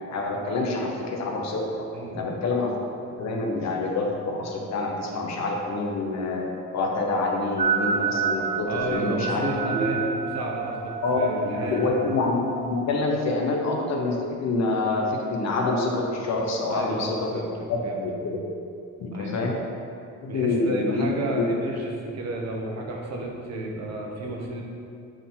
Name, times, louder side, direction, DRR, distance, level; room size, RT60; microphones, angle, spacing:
voice 1, 0.1-1.9 2.1-2.7 3.2-6.5 6.7-9.8 11.0-18.4 19.0-19.6 20.2-21.1 21.3-21.5, left 3 dB, 65° left, 0 dB, 1.0 m, -26 dB
voice 2, 1.9-2.4 8.7-12.0 16.7-18.0 19.1-19.6 20.3-24.6, right 2 dB, 60° right, -1 dB, 1.1 m, -32 dB
sound 1, 7.6-13.0, right 6 dB, 25° right, 0.5 m, -30 dB
6.4 x 4.3 x 3.9 m, 2.5 s
cardioid pair, 90°, 30 cm